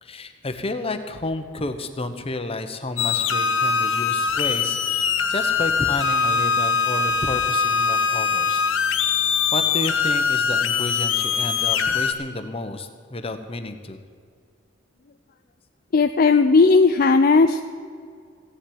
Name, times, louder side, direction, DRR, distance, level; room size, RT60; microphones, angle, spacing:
voice 1, 0.0-8.7 9.5-14.0, left 2 dB, 30° left, 8 dB, 1.1 m, -31 dB
sound 1, 3.0-12.1, left 5 dB, 85° left, 1.1 m, -22 dB
voice 2, 15.9-17.6, left 4 dB, 50° left, 7 dB, 0.5 m, -16 dB
15.5 x 7.3 x 9.6 m, 2.1 s
head